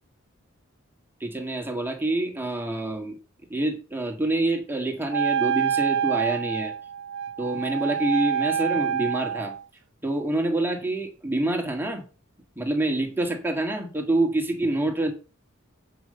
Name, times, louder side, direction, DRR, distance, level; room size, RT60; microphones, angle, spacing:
voice 1, 1.2-3.2 3.5-6.7 7.4-9.6 10.0-12.0 12.6-15.1, right 2 dB, 10° right, 2 dB, 1.9 m, -26 dB
Wind instrument woodwind instrument, 5.1-9.6, right 8 dB, 60° right, 0.7 m, -26 dB
9.0 x 5.2 x 6.7 m, 0.35 s
head